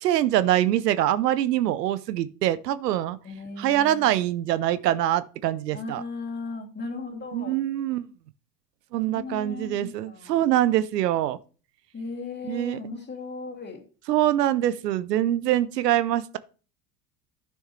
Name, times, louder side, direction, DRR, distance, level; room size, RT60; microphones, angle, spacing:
voice 1, 0.0-3.2 3.6-6.0 7.3-8.1 8.9-11.4 12.5-12.8 14.1-16.4, right 13 dB, 85° right, 0.7 m, -24 dB
voice 2, 3.2-4.2 5.7-7.6 9.1-10.5 11.9-13.8, left 3 dB, 20° left, 2.6 m, -37 dB
11.5 x 6.3 x 3.1 m
hypercardioid pair, 80°, 47 cm